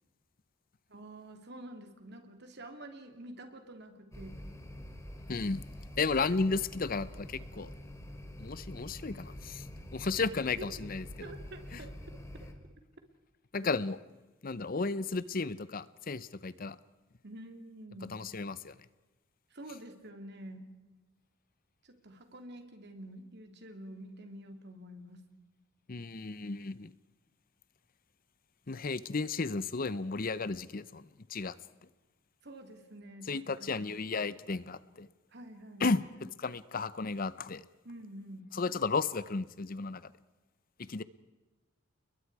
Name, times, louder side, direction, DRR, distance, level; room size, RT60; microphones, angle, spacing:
voice 1, 0.9-4.4 10.6-10.9 11.2-11.9 12.3-12.5 13.6-13.7 17.2-18.1 19.5-20.7 21.8-25.2 32.4-33.8 35.3-35.9 37.8-38.5, right 1 dB, 55° right, 6 dB, 2.9 m, -48 dB
sound 1, 4.1-12.5, equal, 15° left, 2.7 m, -46 dB
voice 2, 5.3-5.6 6.0-7.7 8.4-9.7 9.9-11.3 11.7-11.8 13.5-14.0 14.4-16.8 18.1-18.8 25.9-26.9 28.7-31.6 33.3-35.1 35.8-37.7 38.5-40.1 40.8-41.0, left 4 dB, 45° left, 16 dB, 0.7 m, -34 dB
30.0 x 22.0 x 4.8 m, 1.1 s
head